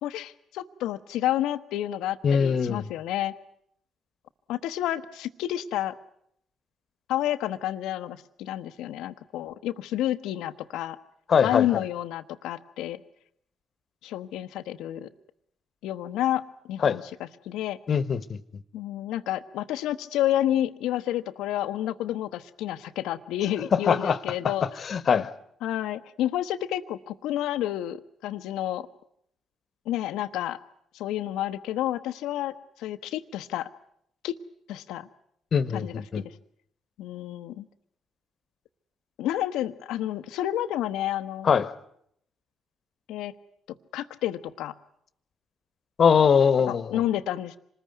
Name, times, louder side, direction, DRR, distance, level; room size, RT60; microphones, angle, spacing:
voice 1, 0.0-3.3 4.5-6.0 7.1-11.0 11.4-13.0 14.0-15.1 15.8-17.8 18.7-24.6 25.6-28.9 29.9-30.6 30.9-33.7 34.2-34.4 34.7-35.1 35.7-35.9 36.2-36.3 37.0-37.7 39.2-41.5 43.1-43.3 43.9-44.7 46.7-47.6, left 12 dB, 75° left, 1.0 m, -30 dB
voice 2, 2.2-2.8 11.3-11.8 16.8-17.0 17.9-18.4 23.7-24.2 24.4-24.5 24.8-25.3 35.5-36.2 41.4-41.7 46.0-47.0, left 6 dB, 50° left, 1.3 m, -22 dB
26.5 x 20.0 x 9.4 m
hypercardioid pair, 45°, 0 cm